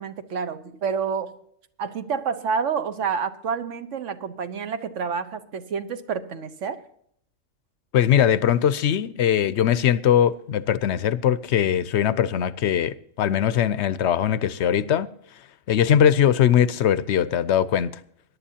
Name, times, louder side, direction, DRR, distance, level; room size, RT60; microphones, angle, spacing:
voice 1, 0.0-1.4 1.8-6.8, right 6 dB, 65° right, 1.2 m, -28 dB
voice 2, 7.9-15.1 15.7-17.9, left 9 dB, 65° left, 0.8 m, -21 dB
21.5 x 11.0 x 2.8 m
omnidirectional pair, 1.4 m